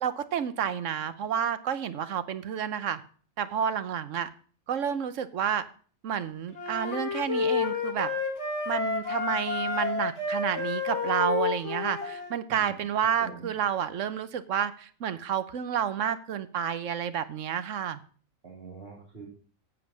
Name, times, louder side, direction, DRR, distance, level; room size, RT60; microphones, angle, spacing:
voice 1, 0.0-3.0 3.4-4.3 4.7-5.6 6.0-8.1 8.7-18.0, right 8 dB, 75° right, 13 dB, 1.1 m, -30 dB
sound 1, 6.5-12.3, left 4 dB, 60° left, 2.6 m, -30 dB
voice 2, 12.5-12.8 13.2-13.5 18.4-19.3, right 4 dB, 50° right, -2 dB, 3.1 m, -44 dB
8.8 x 7.4 x 6.2 m, 0.44 s
omnidirectional pair, 1.3 m